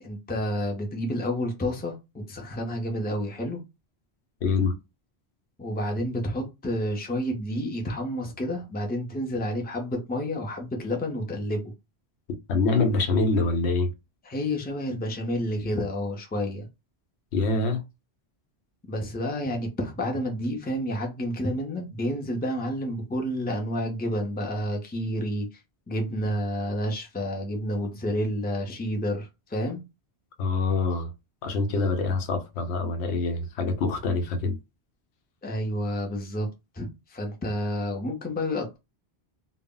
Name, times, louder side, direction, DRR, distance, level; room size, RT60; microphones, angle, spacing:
voice 1, 0.0-3.6 5.6-11.6 14.2-16.7 18.9-25.5 25.9-29.8 35.4-36.5 36.7-38.8, equal, 15° left, 0.4 m, -30 dB
voice 2, 4.4-4.7 12.5-13.9 17.3-17.8 30.4-31.1 31.4-34.6, left 3 dB, 85° left, 0.9 m, -25 dB
2.1 x 2.0 x 3.6 m
omnidirectional pair, 1.1 m